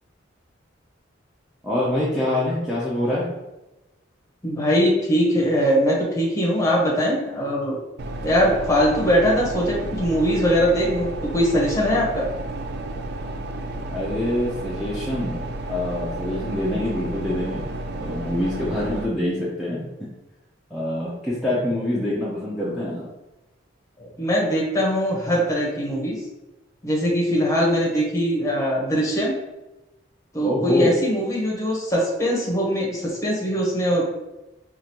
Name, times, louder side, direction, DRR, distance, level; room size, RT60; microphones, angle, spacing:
voice 1, 1.6-3.3 13.9-17.7 18.0-19.9 20.7-23.1 30.4-31.0, left 1 dB, ahead, -9 dB, 0.6 m, -25 dB
voice 2, 4.4-7.8 8.2-12.3 24.0-26.2 26.8-29.3 30.3-34.1, equal, 15° left, -3 dB, 0.9 m, -21 dB
sound 1, 8.0-19.1, right 1 dB, 55° right, 0.3 m, -32 dB
4.9 x 2.5 x 2.9 m, 1.0 s
head